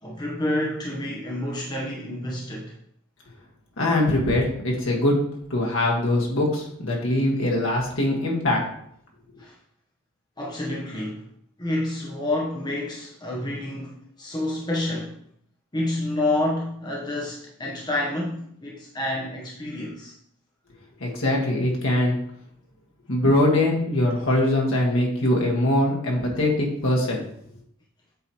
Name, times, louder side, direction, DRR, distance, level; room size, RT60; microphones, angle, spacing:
voice 1, 0.0-2.7 9.4-9.6 10.4-11.3 11.6-15.2 15.7-20.1, left 1 dB, 20° left, 0.8 m, -29 dB
voice 2, 3.8-5.2 5.5-8.6 21.0-22.2 23.1-27.3, left 1 dB, 65° left, 1.5 m, -22 dB
8.0 x 3.0 x 4.2 m
head